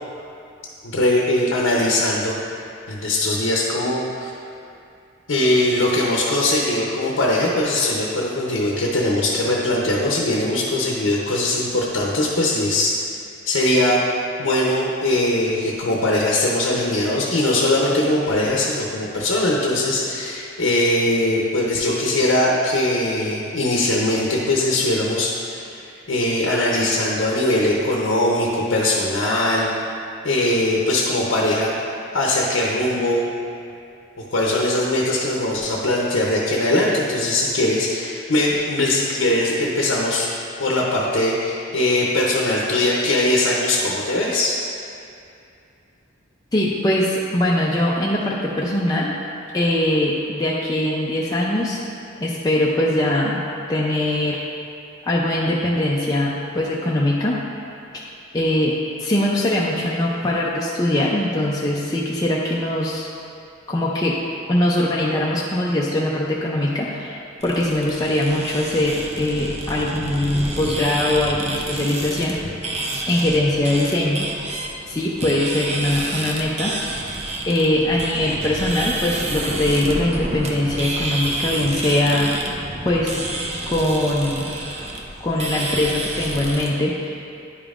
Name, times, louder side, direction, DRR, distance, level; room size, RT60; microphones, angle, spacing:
voice 1, 0.8-2.3 2.9-4.3 5.3-13.0 13.5-14.0 14.4-29.7 30.2-33.3 34.3-40.3 40.6-44.6, left 1 dB, 65° left, -3 dB, 0.7 m, -21 dB
voice 2, 46.5-49.1 49.5-51.8 52.2-53.4 53.7-54.5 55.1-57.4 58.3-63.1 63.7-64.2 64.5-67.2 67.4-72.4 73.1-74.4 74.9-76.7 77.5-82.4 82.8-83.2 83.7-84.5 85.2-87.2, left 1 dB, 20° left, -5 dB, 0.4 m, -21 dB
sound 1, 67.4-86.7, right 2 dB, 30° right, 0.5 m, -29 dB
9.9 x 5.2 x 2.5 m, 2.5 s
head